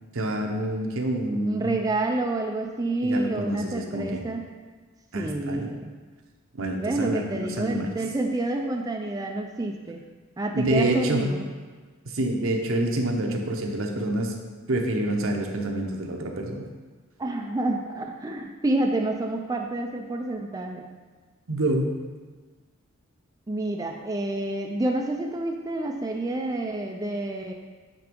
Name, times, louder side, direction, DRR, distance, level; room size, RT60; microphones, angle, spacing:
voice 1, 0.1-1.7 3.0-4.2 5.1-5.7 6.5-7.9 10.5-11.3 12.0-14.3 14.7-16.6 21.5-21.8, right 1 dB, 70° right, 2 dB, 0.9 m, -27 dB
voice 2, 1.5-4.5 5.1-6.0 6.8-10.0 10.4-11.5 13.2-13.4 17.2-20.9 23.5-27.5, right 2 dB, 15° right, 2 dB, 0.4 m, -28 dB
9.1 x 3.5 x 5.2 m, 1.4 s
head